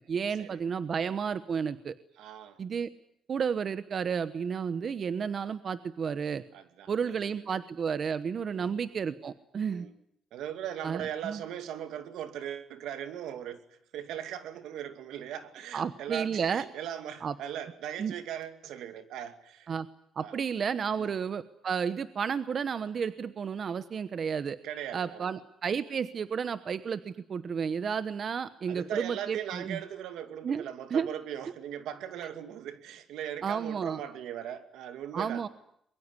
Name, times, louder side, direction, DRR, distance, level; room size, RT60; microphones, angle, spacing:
voice 1, 0.1-1.9 2.6-2.9 3.3-6.4 6.9-9.9 10.8-11.4 15.7-16.6 17.2-17.3 18.0-18.1 19.7-19.9 20.1-24.6 24.9-29.8 30.4-30.6 30.9-31.1 33.4-34.0 35.1-35.5, right 6 dB, 50° right, 13 dB, 1.0 m, -32 dB
voice 2, 2.2-2.6 6.5-7.4 8.4-8.7 9.7-9.9 10.3-19.7 20.2-20.3 21.0-21.1 24.6-25.3 28.7-35.5, right 10 dB, 85° right, 9 dB, 2.5 m, -39 dB
22.5 x 22.5 x 9.7 m, 0.73 s
cardioid pair, 90°, 0 cm